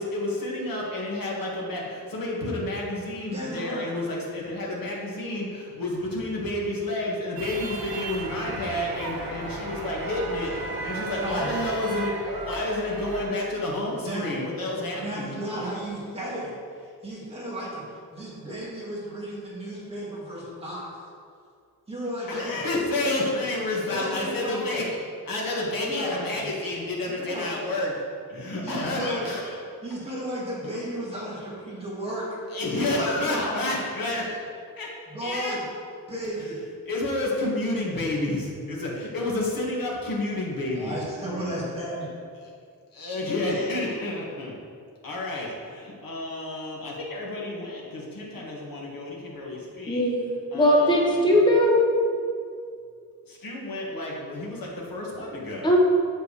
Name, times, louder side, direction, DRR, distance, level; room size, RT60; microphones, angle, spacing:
voice 1, 0.0-15.4 22.3-25.0 25.3-27.9 28.3-29.6 32.5-34.4 34.8-34.9 35.2-35.6 36.9-41.0 41.2-41.5 42.9-44.6 45.0-50.1 50.5-51.4 53.3-55.7, left 1 dB, 70° left, -4 dB, 1.9 m, -30 dB
voice 2, 3.3-3.9 11.2-11.6 14.0-14.3 15.0-17.8 18.1-20.8 21.9-22.6 23.0-23.2 23.9-24.8 25.8-26.5 27.1-27.5 28.6-29.3 29.8-32.2 32.7-33.5 35.1-35.6 36.1-36.6 40.7-42.1, equal, 15° right, -7 dB, 2.1 m, -34 dB
sound 1, 7.4-13.3, right 2 dB, 75° right, 1.5 m, -34 dB
voice 3, 49.9-50.2 50.5-51.8 55.6-55.8, equal, 10° left, -2 dB, 1.0 m, -19 dB
8.2 x 7.4 x 3.3 m, 2.2 s
wide cardioid pair, 175°, 36 cm